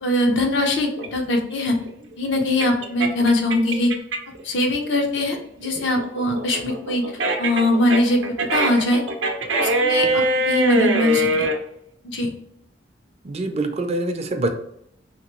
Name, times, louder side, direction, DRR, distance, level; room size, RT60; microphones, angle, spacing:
voice 1, 0.0-1.8 2.2-3.9 4.4-7.0 7.4-9.0 9.6-11.5 12.0-12.3, left 1 dB, 75° left, 2 dB, 0.7 m, -21 dB
sound 1, 1.0-4.4 4.8-11.6, right 1 dB, 85° right, 0.5 m, -23 dB
voice 2, 13.2-14.5, right 2 dB, 35° right, 6 dB, 0.4 m, -25 dB
2.9 x 2.9 x 3.0 m, 0.71 s
head